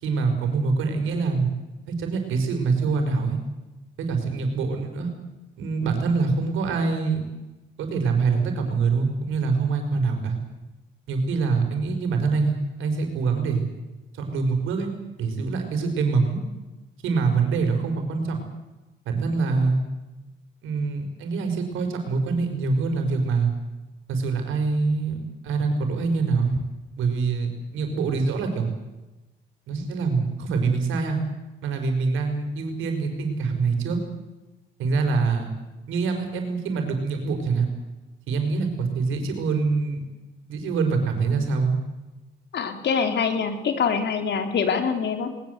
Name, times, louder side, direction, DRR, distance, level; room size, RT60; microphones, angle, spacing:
voice 1, 0.0-1.5 1.9-3.4 4.1-5.1 5.6-7.2 7.8-10.4 11.1-13.6 14.2-14.9 15.2-16.4 17.0-18.4 19.0-19.8 20.6-23.5 24.1-26.6 27.0-28.7 29.7-31.2 31.6-34.0 34.8-35.5 35.9-37.7 38.3-40.0 40.5-41.8, right 4 dB, 90° right, 5 dB, 5.2 m, -24 dB
voice 2, 42.5-45.3, left 6 dB, 60° left, 6 dB, 3.6 m, -24 dB
21.0 x 20.5 x 8.1 m, 1.1 s
cardioid pair, 90°, 20 cm